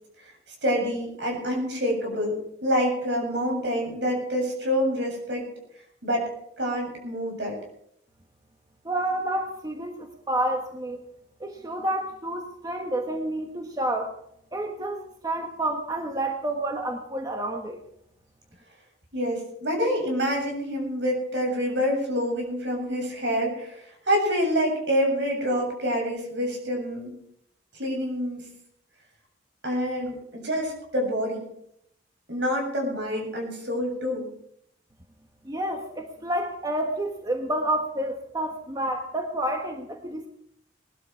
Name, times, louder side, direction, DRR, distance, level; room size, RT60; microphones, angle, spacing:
voice 1, 0.6-5.4 6.0-6.3 6.6-7.5 19.1-27.1 27.7-28.4 29.6-31.4 32.3-34.3, equal, 65° right, 1 dB, 7.5 m, -27 dB
voice 2, 8.8-11.0 11.4-14.1 14.5-17.8 35.4-40.3, right 1 dB, 20° right, 3 dB, 1.3 m, -29 dB
20.0 x 12.5 x 4.7 m, 0.72 s
head